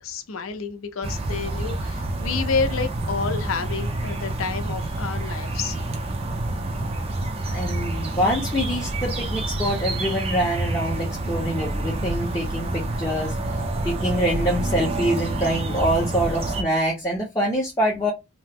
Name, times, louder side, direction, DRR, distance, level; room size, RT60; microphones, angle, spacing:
voice 1, 0.0-5.8, left 5 dB, 80° left, 0.6 m, -29 dB
sound 1, 1.0-16.6, right 2 dB, 30° right, 0.5 m, -28 dB
voice 2, 7.5-13.4 13.8-18.1, equal, 15° left, 0.7 m, -25 dB
2.9 x 2.0 x 3.4 m
head